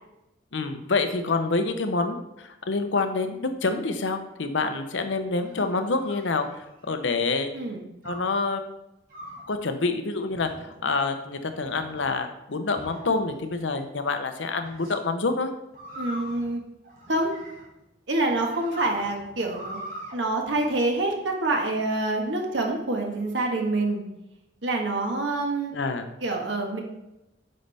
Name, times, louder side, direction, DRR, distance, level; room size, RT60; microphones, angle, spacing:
voice 1, 0.5-7.6 8.0-8.6 9.5-15.5 25.7-26.1, left 3 dB, 80° left, 7 dB, 0.8 m, -27 dB
sound 1, 5.2-7.0 8.0-8.4 9.1-9.5 10.3-10.8 11.4-12.1 12.8-13.5 14.6-14.9 15.7-17.8 18.3-20.1, right 1 dB, 50° right, 2.0 m, -42 dB
voice 2, 16.0-16.6 17.1-17.3 18.1-19.8 20.1-24.0 24.6-25.7 26.2-26.8, right 2 dB, 80° right, 1 dB, 1.5 m, -26 dB
9.4 x 5.3 x 3.4 m, 0.91 s
head